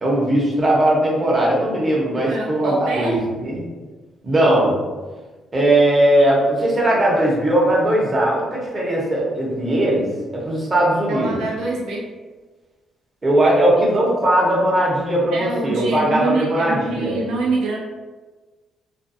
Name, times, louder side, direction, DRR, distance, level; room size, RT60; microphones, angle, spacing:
voice 1, 0.0-3.7 4.2-4.8 5.5-10.0 10.3-11.4 13.2-17.2, right 1 dB, 25° right, -5 dB, 0.9 m, -18 dB
voice 2, 2.1-3.2 11.1-12.1 15.3-17.8, right 2 dB, 80° right, -2 dB, 0.4 m, -25 dB
2.5 x 2.2 x 2.6 m, 1.3 s
cardioid pair, 90°, 0 cm